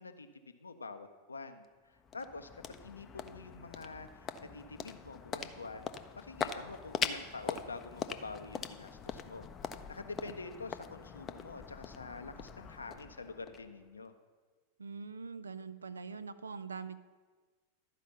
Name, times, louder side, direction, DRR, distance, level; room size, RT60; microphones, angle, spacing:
voice 1, 0.0-5.9 6.1-14.1, left 3 dB, 75° left, 8 dB, 0.6 m, -47 dB
sound 1, 1.6-14.1, left 7 dB, 25° left, 0.5 m, -42 dB
voice 2, 14.8-17.0, right 5 dB, 75° right, 13 dB, 0.4 m, -43 dB
12.0 x 5.0 x 6.8 m, 1.4 s
figure-of-eight pair, 90°, 0 cm